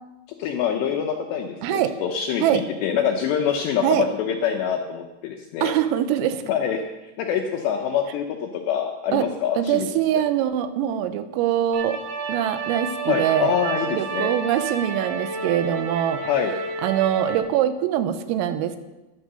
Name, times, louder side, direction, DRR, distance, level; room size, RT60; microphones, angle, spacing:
voice 1, 0.4-5.7 6.5-9.9 13.1-14.3 16.2-16.5, left 8 dB, 80° left, 4 dB, 2.5 m, -25 dB
voice 2, 1.6-1.9 2.4-2.6 3.8-4.1 5.6-6.4 9.1-9.3 9.6-12.0 12.3-13.5 13.9-16.2 16.8-18.8, right 11 dB, 85° right, 10 dB, 3.5 m, -23 dB
sound 1, 11.7-17.4, right 4 dB, 60° right, 3.1 m, -30 dB
12.5 x 11.0 x 6.7 m, 1.1 s
omnidirectional pair, 6.0 m